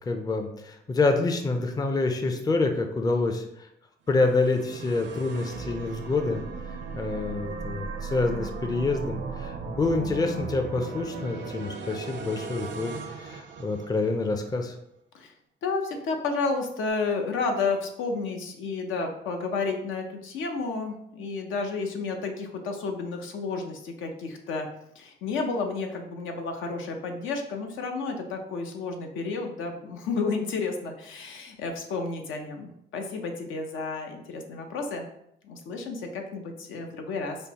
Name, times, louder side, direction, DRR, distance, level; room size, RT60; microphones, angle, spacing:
voice 1, 0.1-3.7 4.1-6.4 6.9-14.8, left 3 dB, 20° left, 5 dB, 0.4 m, -27 dB
sound 1, 4.1-14.3, right 5 dB, 65° right, 0.5 m, -37 dB
voice 2, 15.6-24.7 25.0-35.1 35.4-37.4, left 4 dB, 80° left, 3 dB, 0.6 m, -31 dB
5.1 x 2.0 x 2.9 m, 0.75 s
cardioid pair, 90°, 20 cm